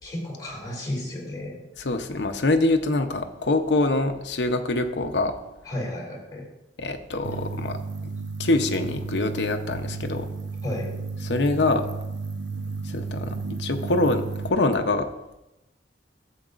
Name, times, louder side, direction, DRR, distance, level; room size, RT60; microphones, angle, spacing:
voice 1, 0.0-1.6 5.7-6.5 10.6-10.9, left 1 dB, 20° left, -3 dB, 2.7 m, -33 dB
voice 2, 1.8-5.3 6.8-7.8 8.4-10.3 11.2-11.9 12.8-15.1, left 2 dB, 70° left, 6 dB, 0.7 m, -24 dB
sound 1, 7.2-14.5, right 4 dB, 85° right, 0.5 m, -33 dB
12.5 x 7.8 x 2.5 m, 0.95 s
head